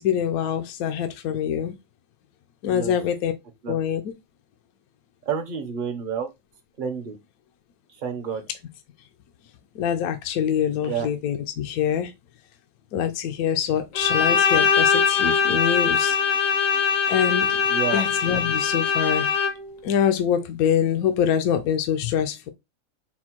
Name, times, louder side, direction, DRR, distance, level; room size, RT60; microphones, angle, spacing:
voice 1, 0.0-1.7 2.6-3.3 3.7-4.1 9.7-12.1 12.9-16.2 17.1-17.6 17.9-19.3 19.8-22.5, left 9 dB, 70° left, 1.0 m, -24 dB
voice 2, 2.7-3.0 3.6-3.8 5.3-6.3 6.8-7.2 8.0-8.4 10.8-11.1 17.7-18.0, right 7 dB, 45° right, 0.7 m, -29 dB
Bowed string instrument, 13.9-19.8, left 6 dB, 55° left, 0.7 m, -22 dB
4.3 x 2.1 x 4.3 m
omnidirectional pair, 1.7 m